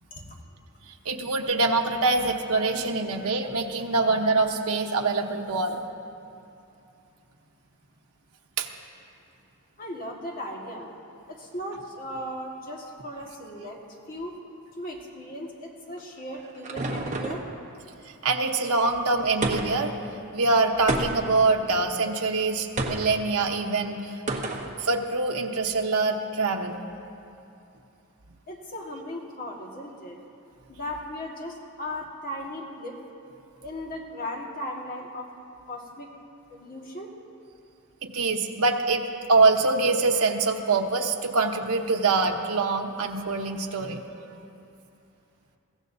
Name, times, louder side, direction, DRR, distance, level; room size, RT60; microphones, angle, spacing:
voice 1, 0.9-5.8 8.6-8.7 18.0-19.9 20.3-24.2 24.8-26.8 38.0-39.0 39.3-44.0, right 3 dB, 80° right, 2 dB, 1.1 m, -24 dB
voice 2, 9.8-10.9 11.3-13.8 14.1-14.3 14.8-17.4 28.5-30.2 30.7-33.0 33.6-35.2 35.7-36.1 36.5-37.1, left 1 dB, 40° left, -1 dB, 1.7 m, -37 dB
sound 1, 16.0-17.5 19.4-19.9 20.9-21.4 22.8-23.1 24.3-24.7, right 2 dB, 35° right, 1.1 m, -29 dB
22.0 x 15.5 x 2.7 m, 2.7 s
head